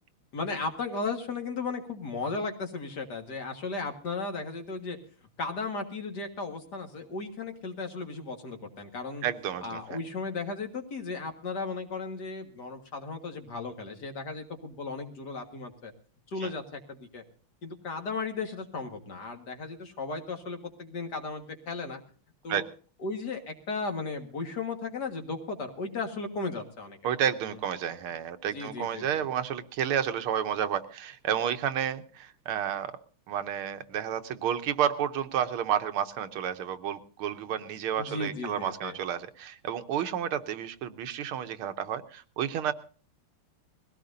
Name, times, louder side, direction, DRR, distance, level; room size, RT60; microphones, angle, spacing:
voice 1, 0.3-5.0 5.4-9.2 9.6-15.9 16.3-17.2 17.6-22.0 22.4-22.6 23.0-27.0 28.5-29.2 38.0-39.0, left 3 dB, 50° left, 4 dB, 2.2 m, -35 dB
voice 2, 9.2-9.8 16.4-16.5 22.5-22.6 27.0-32.9 33.3-42.7, right 9 dB, 80° right, 9 dB, 1.8 m, -31 dB
21.0 x 17.0 x 2.7 m, 0.40 s
omnidirectional pair, 2.4 m